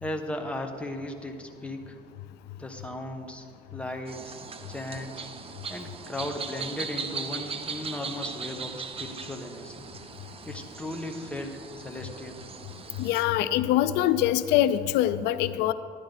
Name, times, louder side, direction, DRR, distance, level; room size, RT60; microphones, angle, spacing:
voice 1, 0.0-2.0 2.6-3.5 3.7-4.4 4.7-5.3 5.7-9.8 10.5-12.4, left 1 dB, 5° left, 3 dB, 1.1 m, -36 dB
sound 1, 4.1-13.2, right 5 dB, 35° right, 0.8 m, -39 dB
voice 2, 13.0-15.7, left 12 dB, 85° left, 13 dB, 0.4 m, -24 dB
12.0 x 10.5 x 4.0 m, 2.2 s
cardioid pair, 110°, 17 cm